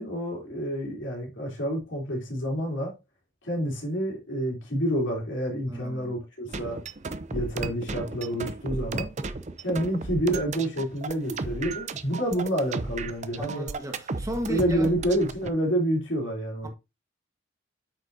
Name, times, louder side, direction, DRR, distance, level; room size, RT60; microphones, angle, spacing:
voice 1, 0.0-2.9 3.4-6.8 7.3-9.1 9.6-13.7 14.5-16.7, equal, 70° left, 3.3 m, -28 dB
voice 2, 5.7-6.1 13.4-14.9 16.6-16.7, equal, 15° right, 1.4 m, -35 dB
sound 1, 6.5-15.5, right 3 dB, 35° right, 0.6 m, -34 dB
8.3 x 6.3 x 2.7 m
head